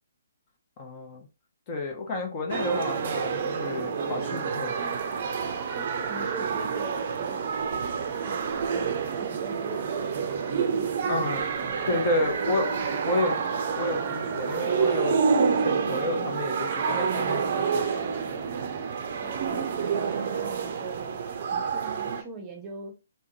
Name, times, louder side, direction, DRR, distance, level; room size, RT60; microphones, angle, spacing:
voice 1, 0.8-1.3 1.7-4.9 11.1-11.5 11.9-12.7 13.0-13.3 13.8-15.2 15.6-18.1, left 2 dB, 35° left, 0.8 m, -30 dB
sound 1, 2.5-22.2, right 6 dB, 45° right, 0.5 m, -28 dB
voice 2, 5.7-7.9 8.2-12.5 13.0-13.6 19.2-22.9, right 3 dB, 20° right, 0.8 m, -43 dB
3.5 x 2.1 x 2.7 m
figure-of-eight pair, 130°, 0 cm